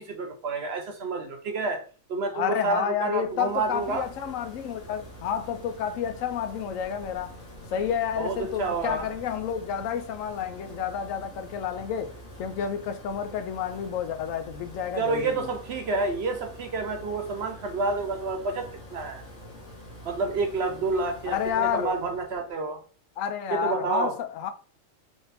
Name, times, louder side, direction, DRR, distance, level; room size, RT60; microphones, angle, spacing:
voice 1, 0.0-1.8 2.1-4.1 8.2-9.1 15.0-19.2 20.0-22.8 23.5-24.1, right 3 dB, 60° right, 0.9 m, -29 dB
voice 2, 2.3-7.4 7.7-12.1 12.4-15.5 21.3-21.9 23.2-24.5, left 8 dB, 80° left, 1.0 m, -30 dB
sound 1, 3.1-22.5, equal, 60° left, 1.8 m, -45 dB
3.6 x 2.6 x 4.0 m
omnidirectional pair, 1.4 m